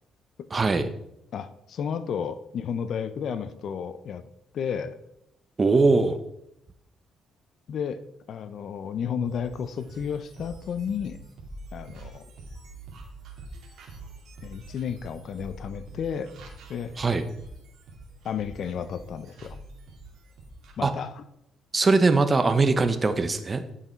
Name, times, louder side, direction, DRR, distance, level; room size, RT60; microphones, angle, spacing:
voice 1, 0.5-0.9 5.6-6.2 17.0-17.2 20.8-20.9 21.7-23.6, right 3 dB, 30° right, 10 dB, 1.0 m, -21 dB
voice 2, 1.3-4.3 4.5-5.0 7.7-8.0 8.3-11.2 11.7-12.3 14.4-16.3 16.7-16.9 18.2-19.6 20.8-21.2, left 7 dB, 65° left, 13 dB, 0.6 m, -32 dB
sound 1, 9.3-20.7, right 2 dB, 75° right, 2.3 m, -45 dB
11.0 x 5.7 x 4.5 m, 0.80 s
cardioid pair, 90°, 0 cm